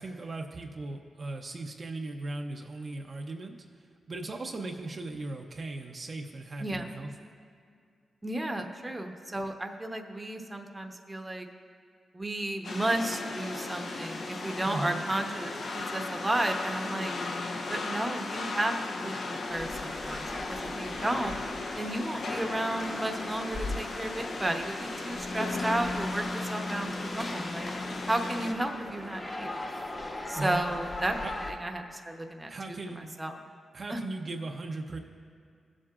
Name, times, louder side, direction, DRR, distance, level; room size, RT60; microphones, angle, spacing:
voice 1, 0.0-3.6 4.1-7.1 14.7-15.0 30.3-30.6 31.2-31.3 32.5-33.1 33.7-35.0, right 2 dB, 50° right, 2 dB, 0.7 m, -37 dB
voice 2, 6.6-6.9 8.2-11.5 12.1-17.2 17.7-18.7 19.0-21.3 21.8-27.7 28.1-29.5 30.3-31.2 31.5-33.3 33.9-34.0, right 1 dB, 20° right, 4 dB, 0.8 m, -33 dB
sound 1, 12.6-28.5, left 3 dB, 70° left, 0.8 m, -36 dB
sound 2, 19.5-31.5, left 2 dB, 30° left, 1.0 m, -39 dB
17.5 x 7.4 x 2.5 m, 2.2 s
cardioid pair, 70°, 0 cm